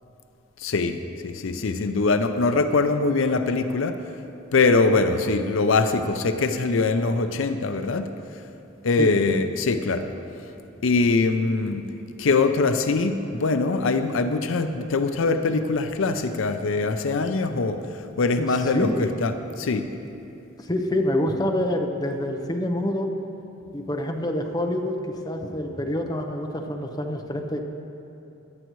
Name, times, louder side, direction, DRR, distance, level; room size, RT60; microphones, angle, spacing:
voice 1, 0.6-1.0 1.2-4.0 4.5-8.1 8.8-10.1 10.8-11.8 12.2-17.8 18.2-19.9, left 3 dB, 75° left, 8 dB, 0.5 m, -22 dB
voice 2, 18.3-19.1 20.7-23.1 23.7-25.0 25.2-27.6, left 1 dB, 20° left, 3 dB, 0.8 m, -27 dB
17.0 x 11.5 x 3.1 m, 2.8 s
head